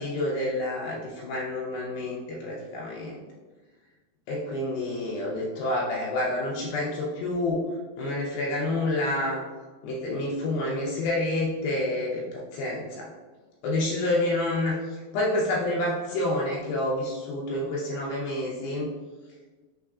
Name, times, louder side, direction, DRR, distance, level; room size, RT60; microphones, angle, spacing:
voice 1, 0.0-3.2 4.3-7.6 8.0-9.4 9.8-13.1 13.6-18.9, left 1 dB, 80° left, -4 dB, 2.4 m, -28 dB
6.1 x 3.3 x 2.3 m, 1.3 s
omnidirectional pair, 4.4 m